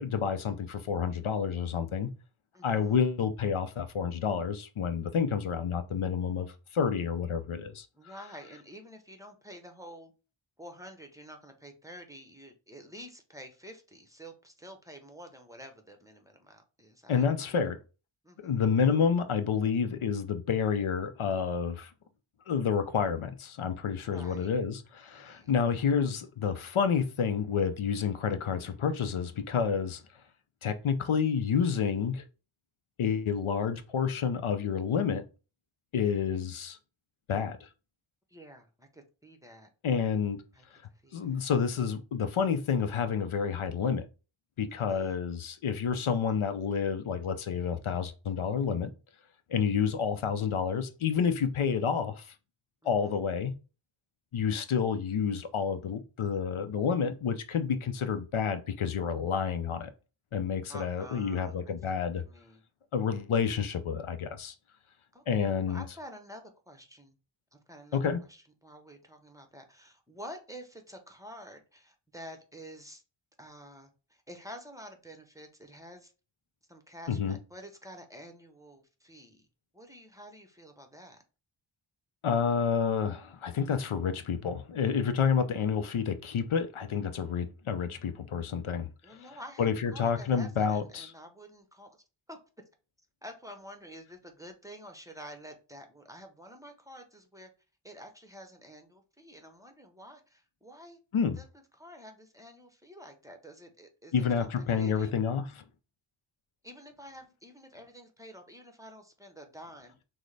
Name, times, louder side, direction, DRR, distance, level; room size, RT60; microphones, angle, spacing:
voice 1, 0.0-2.1 2.6-7.9 17.1-17.8 18.4-21.9 22.5-30.0 30.6-32.2 33.0-35.2 35.9-36.8 37.3-37.7 39.8-40.4 41.1-44.1 44.6-48.9 49.5-52.3 52.8-53.6 54.3-59.9 60.3-62.2 62.9-64.5 65.3-65.8 67.9-68.2 77.1-77.4 82.2-89.2 89.6-91.1 101.1-101.4 104.1-105.6, left 6 dB, 75° left, 0.6 m, -29 dB
voice 2, 2.5-3.0 7.9-10.1 10.6-17.6 18.2-18.6 24.0-24.5 25.1-25.5 38.3-39.7 40.5-40.6 40.9-41.5 44.9-45.2 52.8-53.2 60.7-62.6 65.1-67.2 67.5-68.0 68.3-73.0 73.4-76.1 76.7-79.5 79.7-81.2 89.0-92.0 92.3-92.4 93.2-97.5 97.8-101.0 101.4-101.5 101.7-105.2 106.6-109.9, equal, 5° right, 0.8 m, -49 dB
6.1 x 2.1 x 3.2 m
wide cardioid pair, 55°, 50 cm